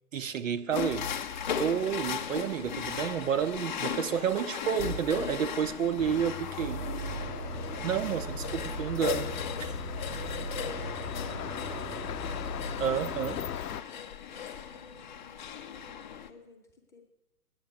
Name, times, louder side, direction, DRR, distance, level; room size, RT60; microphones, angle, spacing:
voice 1, 0.1-1.1 1.6-6.8 7.8-9.8 12.8-13.4, right 8 dB, 55° right, 0.7 m, -30 dB
sound 1, 0.7-16.3, left 8 dB, 30° left, 0.6 m, -38 dB
voice 2, 5.4-5.8 8.3-8.4 9.9-12.1 14.2-17.0, left 4 dB, 5° left, 0.9 m, -52 dB
sound 2, 6.0-13.8, left 8 dB, 75° left, 0.7 m, -39 dB
sound 3, 6.6-13.4, right 4 dB, 85° right, 1.1 m, -40 dB
10.0 x 8.8 x 8.0 m
hypercardioid pair, 145°, 47 cm